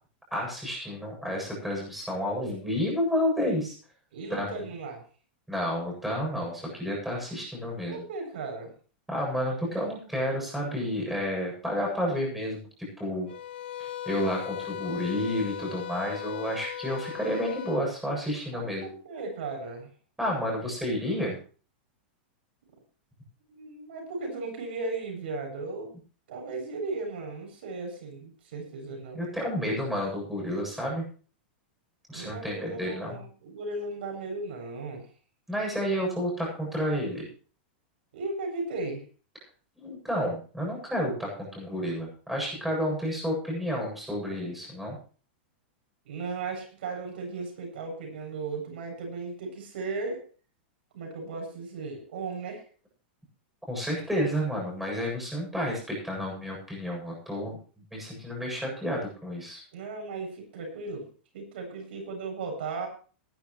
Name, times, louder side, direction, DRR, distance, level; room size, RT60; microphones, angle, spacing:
voice 1, 0.3-3.7 4.3-4.7 5.5-8.0 9.1-12.7 13.0-13.3 14.1-18.9 20.2-21.4 29.1-31.0 32.1-33.2 35.5-37.3 39.8-45.0 53.7-57.6 57.9-59.6, equal, 5° right, -1 dB, 8.0 m, -30 dB
voice 2, 4.1-5.0 7.9-8.7 18.5-19.9 23.5-25.9 26.3-29.2 32.1-35.1 38.1-39.0 46.1-50.2 50.9-52.6 59.7-61.1 61.3-62.9, right 3 dB, 70° right, 3 dB, 7.4 m, -36 dB
sound 1, 13.3-17.9, left 11 dB, 75° left, 1.1 m, -38 dB
20.0 x 11.5 x 3.2 m, 0.40 s
supercardioid pair, 145°, 6 cm